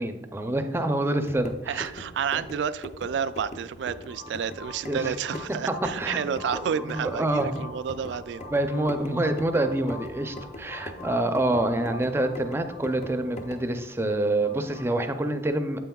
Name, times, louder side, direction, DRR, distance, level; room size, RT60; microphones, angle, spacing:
voice 1, 0.0-1.9 2.3-2.4 4.9-5.0 6.0-6.2 6.7-7.7 8.5-15.8, right 1 dB, 15° right, 7 dB, 0.5 m, -27 dB
sound 1, 1.1-13.8, left 1 dB, 40° left, 0.6 m, -42 dB
voice 2, 1.7-8.4, right 7 dB, 75° right, 15 dB, 0.3 m, -30 dB
sound 2, 3.4-14.8, left 3 dB, 65° left, 2.6 m, -45 dB
9.1 x 7.6 x 2.3 m, 1.0 s
head